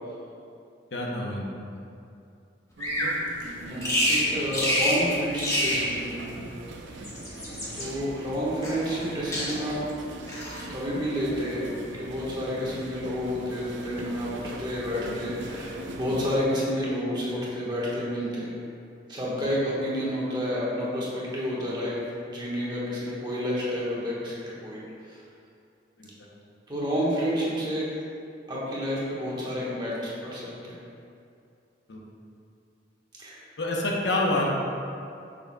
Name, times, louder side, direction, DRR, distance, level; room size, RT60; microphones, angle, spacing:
voice 1, 0.9-1.4 1.7-1.8 26.0-26.1 31.9-32.0 33.6-34.5, left 2 dB, 70° left, -2 dB, 0.8 m, -27 dB
Bird vocalization bird call bird song, 2.8-3.1 3.8-4.2 4.5-5.0 5.3-5.9 6.9-7.9 8.6-9.1 9.3-9.8 10.3-10.7, equal, 15° left, 1.1 m, -27 dB
Ambience Office, 2.8-16.4, right 2 dB, 85° right, 0.6 m, -40 dB
voice 2, 3.6-6.1 7.7-9.8 10.7-11.7 12.0-18.5 19.1-21.9 22.3-24.8 25.1-25.2 26.7-27.9 28.5-30.8 33.2-33.4, equal, 25° right, -7 dB, 1.3 m, -30 dB
6.6 x 6.4 x 2.2 m, 2.5 s
head